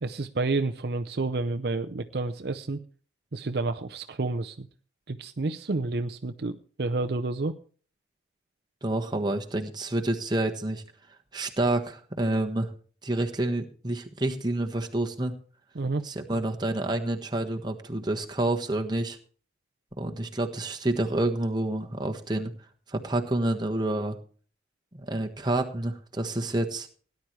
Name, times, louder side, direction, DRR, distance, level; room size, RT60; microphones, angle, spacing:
voice 1, 0.0-2.8 3.3-4.7 5.1-7.5 15.8-16.0, right 3 dB, 60° right, 8 dB, 0.6 m, -30 dB
voice 2, 8.8-10.8 11.3-12.7 13.0-15.4 16.0-19.2 20.0-22.5 22.9-24.2 24.9-26.9, right 1 dB, 25° right, 3 dB, 1.3 m, -28 dB
17.5 x 10.5 x 3.2 m, 0.42 s
head